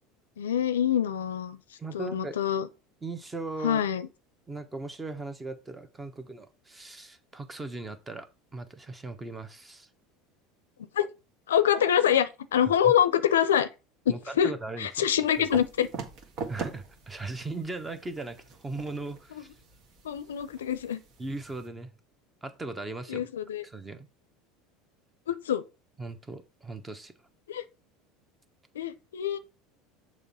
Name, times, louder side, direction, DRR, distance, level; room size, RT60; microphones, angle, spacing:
voice 1, 0.4-1.6 1.9-2.7 3.6-4.1 10.9-11.1 11.5-13.7 14.1-14.5 14.8-15.9 20.0-21.0 23.1-23.6 25.3-25.6 27.5-27.6 28.8-29.4, left 9 dB, 90° left, 0.5 m, -25 dB
voice 2, 1.8-2.4 3.0-3.9 4.5-8.3 8.5-9.9 12.8-12.9 14.1-15.1 15.4-15.5 16.5-18.4 18.6-19.5 21.2-21.9 22.4-23.3 23.6-24.1 26.0-27.1, right 3 dB, 20° right, 1.1 m, -38 dB
sound 1, 15.3-21.7, right 5 dB, 55° right, 1.6 m, -42 dB
6.7 x 3.1 x 5.5 m
hypercardioid pair, 85°, 0 cm